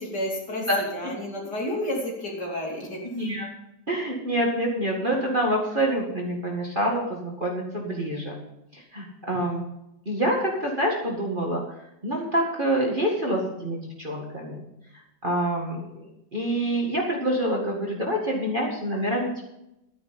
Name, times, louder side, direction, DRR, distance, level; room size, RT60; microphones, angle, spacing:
voice 1, 0.0-3.0, left 1 dB, 50° left, -2 dB, 3.5 m, -31 dB
voice 2, 3.1-3.5 3.9-8.3 8.7-9.6 10.1-11.6 12.0-14.6 15.2-16.0 16.3-19.4, right 1 dB, 25° right, -2 dB, 2.0 m, -26 dB
12.5 x 10.0 x 5.3 m, 0.85 s
omnidirectional pair, 2.2 m